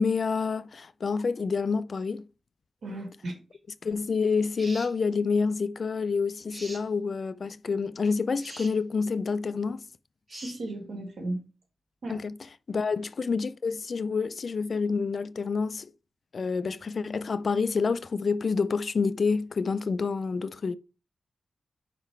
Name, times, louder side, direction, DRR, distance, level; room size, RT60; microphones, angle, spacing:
voice 1, 0.0-2.3 3.8-9.8 12.1-12.3 12.7-15.9 16.3-20.8, left 5 dB, 60° left, 0.4 m, -28 dB
voice 2, 2.8-3.4 10.3-11.4 12.0-12.2, right 1 dB, 85° right, 2.0 m, -35 dB
sound 1, 4.6-4.9 6.5-6.8 8.4-8.7 10.3-10.6, right 1 dB, 25° right, 3.6 m, -42 dB
5.4 x 3.9 x 4.6 m
wide cardioid pair, 95°, 0 cm